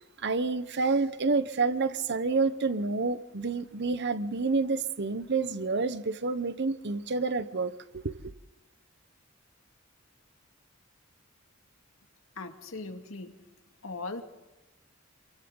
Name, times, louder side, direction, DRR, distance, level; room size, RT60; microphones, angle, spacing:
voice 1, 0.2-8.3, right 4 dB, 55° right, 1.0 m, -29 dB
voice 2, 12.4-13.3 13.8-14.2, left 3 dB, 75° left, 2.3 m, -39 dB
27.5 x 24.0 x 3.9 m
head